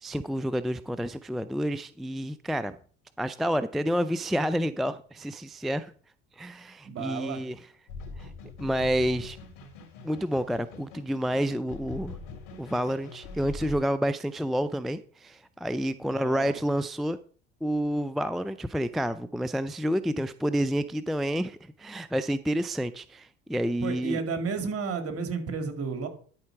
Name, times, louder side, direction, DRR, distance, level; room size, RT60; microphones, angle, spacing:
voice 1, 0.0-2.8 3.2-5.9 6.4-7.6 8.2-8.3 8.6-9.4 10.0-12.2 12.6-17.2 17.6-24.2, equal, ahead, 14 dB, 0.4 m, -29 dB
voice 2, 6.8-7.4 16.1-16.6 23.8-26.1, right 5 dB, 45° right, 7 dB, 2.4 m, -32 dB
sound 1, 7.9-13.8, left 4 dB, 70° left, 3.9 m, -43 dB
12.0 x 4.4 x 5.9 m, 0.44 s
hypercardioid pair, 70°, 32 cm